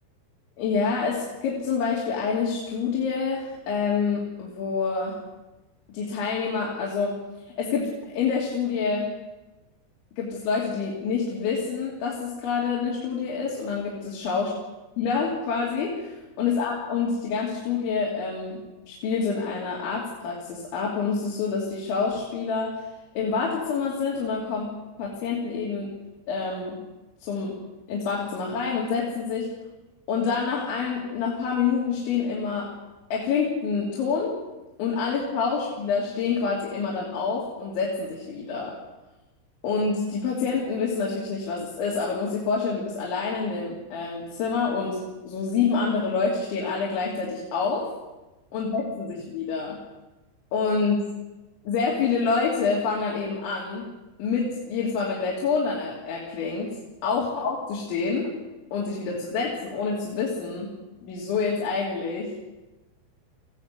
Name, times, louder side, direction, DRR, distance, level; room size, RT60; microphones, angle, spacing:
voice 1, 0.6-5.2 5.9-7.2 7.4-9.1 10.2-14.5 15.0-22.8 23.1-24.7 25.0-25.9 26.3-26.8 27.2-27.6 27.9-29.5 30.1-32.7 33.1-34.3 34.8-38.8 39.6-47.8 48.5-49.8 50.5-51.1 51.7-53.9 54.2-56.7 57.0-58.3 58.7-60.7 61.0-62.3, left 5 dB, 75° left, -4 dB, 5.1 m, -27 dB
21.0 x 15.5 x 8.3 m, 1.1 s
omnidirectional pair, 5.5 m